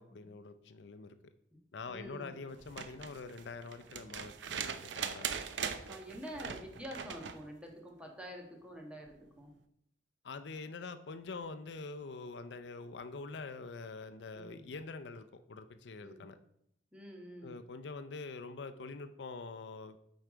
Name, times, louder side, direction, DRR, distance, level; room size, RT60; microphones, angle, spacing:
voice 1, 0.0-1.3 1.7-5.3 10.2-16.4 17.4-20.1, left 4 dB, 70° left, 10 dB, 0.5 m, -45 dB
voice 2, 1.9-2.3 5.9-9.5 14.3-14.6 16.0-16.2 16.9-17.6, equal, 5° right, 1 dB, 1.3 m, -47 dB
sound 1, 2.6-7.4 9.1-9.2, right 7 dB, 90° right, 0.6 m, -41 dB
7.9 x 4.6 x 4.9 m, 0.74 s
head